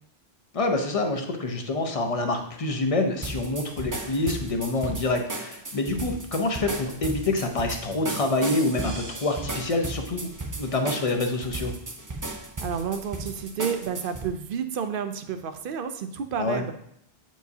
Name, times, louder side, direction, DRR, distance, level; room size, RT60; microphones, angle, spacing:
voice 1, 0.5-10.3 10.6-11.7 16.4-16.6, left 2 dB, 40° left, 5 dB, 0.6 m, -26 dB
sound 1, 3.2-14.3, right 2 dB, 25° right, 0.4 m, -35 dB
voice 2, 12.6-16.7, right 7 dB, 65° right, 9 dB, 0.7 m, -30 dB
7.8 x 4.6 x 2.7 m, 0.72 s
omnidirectional pair, 1.0 m